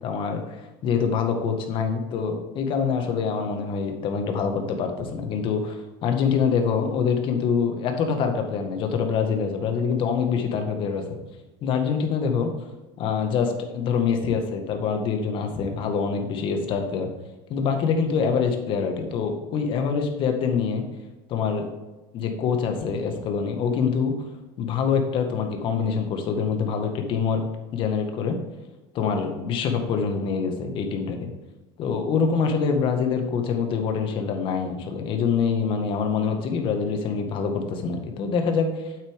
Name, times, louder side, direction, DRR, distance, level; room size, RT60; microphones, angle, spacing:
voice 1, 0.0-11.0 11.6-12.5 13.0-17.1 17.5-20.8 21.3-21.7 22.1-24.3 24.6-27.4 27.7-28.4 28.9-31.3 31.8-38.9, left 6 dB, 50° left, 5 dB, 1.8 m, -25 dB
8.7 x 8.1 x 3.7 m, 1.1 s
supercardioid pair, 105°, 11 cm